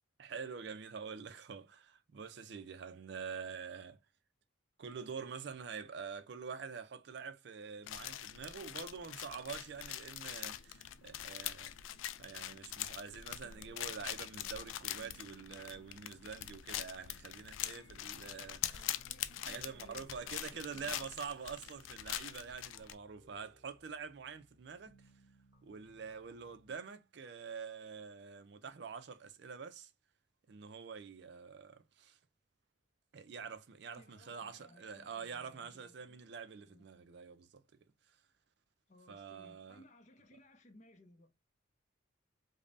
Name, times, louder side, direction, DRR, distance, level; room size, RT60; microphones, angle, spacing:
voice 1, 0.2-4.0 4.8-11.7 12.2-18.8 19.4-25.0 25.6-29.9 30.5-32.2 33.1-37.6 39.1-39.8, right 6 dB, 55° right, 0.4 m, -46 dB
sound 1, 7.9-22.9, left 12 dB, 80° left, 0.3 m, -43 dB
sound 2, 13.4-26.8, equal, 20° right, 1.0 m, -66 dB
voice 2, 18.7-21.0 34.0-36.2 36.7-36.9 38.9-41.3, left 1 dB, 35° left, 0.6 m, -62 dB
5.1 x 2.1 x 2.5 m
head